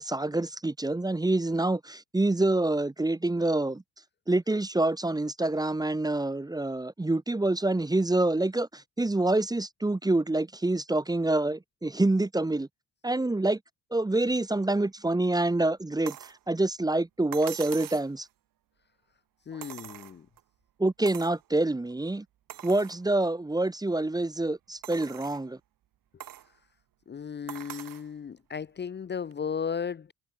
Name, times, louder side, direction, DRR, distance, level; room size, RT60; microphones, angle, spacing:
voice 1, 0.0-3.8 4.3-12.7 13.0-13.6 13.9-18.3 19.5-19.6 20.8-22.2 22.6-25.6, right 2 dB, 10° right, 1.0 m, -27 dB
sound 1, 16.1-16.4 17.3-18.1 19.6-20.4 21.1-21.4 21.9-22.0 22.5-23.0 23.6-23.7 24.8-25.4 26.2-26.5 27.5-28.1 29.3-29.4, right 12 dB, 70° right, 3.4 m, -42 dB
voice 2, 19.5-20.3 27.1-30.1, left 7 dB, 30° left, 0.8 m, -35 dB
cardioid pair, 85°, 35 cm